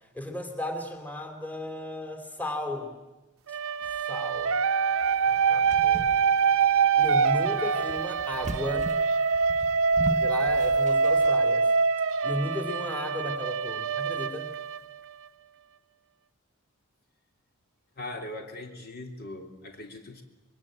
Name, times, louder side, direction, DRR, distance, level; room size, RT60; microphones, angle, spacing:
voice 1, 0.1-2.9 4.1-4.6 5.2-6.4 7.0-8.9 10.1-11.7 12.2-14.5, left 1 dB, 10° left, 5 dB, 3.1 m, -35 dB
sound 1, 3.5-15.3, right 5 dB, 65° right, 0.8 m, -25 dB
sound 2, 5.0-11.3, right 2 dB, 35° right, 1.1 m, -39 dB
voice 2, 18.0-20.2, left 1 dB, 45° left, 4 dB, 3.1 m, -40 dB
27.0 x 22.0 x 8.8 m, 1.1 s
head